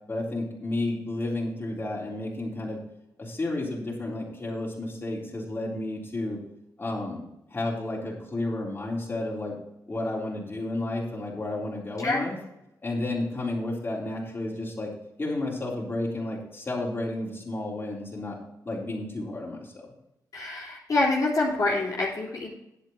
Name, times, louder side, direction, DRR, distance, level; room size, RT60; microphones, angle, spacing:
voice 1, 0.1-2.8 3.2-6.4 6.8-7.2 7.5-9.6 9.9-12.3 12.8-14.9 15.2-18.4 18.7-19.7, left 2 dB, 30° left, -4 dB, 3.7 m, -31 dB
voice 2, 20.3-22.5, left 2 dB, 55° left, -5 dB, 3.3 m, -26 dB
10.0 x 8.4 x 4.5 m, 0.86 s
cardioid pair, 85°, 7 cm